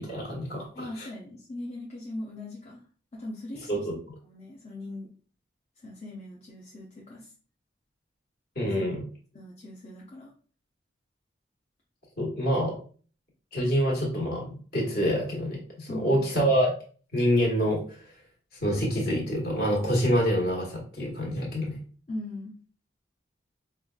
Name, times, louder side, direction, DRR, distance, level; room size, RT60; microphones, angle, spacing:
voice 1, 0.0-0.6 3.7-3.9 8.5-9.0 12.2-12.7 13.5-16.7 17.1-17.8 18.6-21.8, equal, 50° left, -3 dB, 1.3 m, -26 dB
voice 2, 0.7-2.8 3.1-3.9 4.2-5.1 5.8-7.3 8.7-9.0 9.3-10.3 15.9-16.3 22.1-22.6, left 1 dB, 35° left, -4 dB, 0.5 m, -40 dB
4.8 x 2.3 x 2.3 m, 0.42 s
head